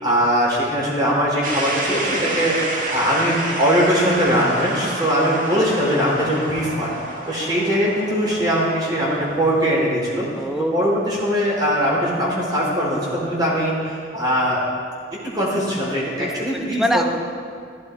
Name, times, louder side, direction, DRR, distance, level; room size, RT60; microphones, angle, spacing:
voice 1, 0.0-2.5 2.9-6.9 7.3-10.2 10.7-14.6 15.2-17.0, equal, 20° right, -5 dB, 4.1 m, -21 dB
sound 1, 1.4-11.3, right 1 dB, 45° right, 2.0 m, -30 dB
voice 2, 10.4-10.7 16.2-17.0, equal, ahead, 4 dB, 0.8 m, -24 dB
15.5 x 15.0 x 4.7 m, 2.1 s
head